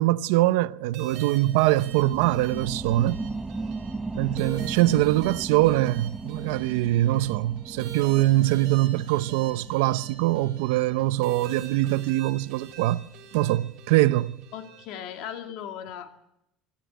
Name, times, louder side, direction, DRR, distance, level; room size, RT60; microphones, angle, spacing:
voice 1, 0.0-3.2 4.2-13.0 13.3-14.4, right 16 dB, 80° right, 0.7 m, -23 dB
sound 1, 0.9-15.4, right 8 dB, 50° right, 4.3 m, -45 dB
sound 2, 1.5-12.6 13.0-13.1, right 3 dB, 5° right, 0.7 m, -38 dB
voice 2, 14.5-16.1, left 9 dB, 50° left, 2.3 m, -37 dB
24.0 x 14.0 x 8.1 m
cardioid pair, 175°, 0 cm